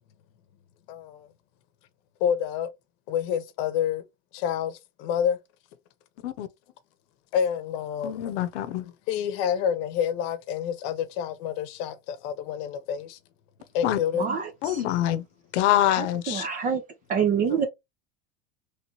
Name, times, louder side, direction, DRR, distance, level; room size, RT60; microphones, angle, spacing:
voice 1, 0.9-1.3 2.2-2.7 3.1-4.0 4.3-5.4 7.3-8.2 8.8-13.2 13.7-14.3 14.9-15.0 17.5-17.6, left 8 dB, 55° left, 0.9 m, -28 dB
voice 2, 8.0-8.8 13.8-14.0 14.6-15.2 15.5-16.5, left 13 dB, 85° left, 0.8 m, -25 dB
voice 3, 14.1-14.8 16.0-16.8 17.1-17.7, right 7 dB, 25° right, 0.5 m, -26 dB
3.2 x 3.1 x 2.9 m
supercardioid pair, 160°, 34 cm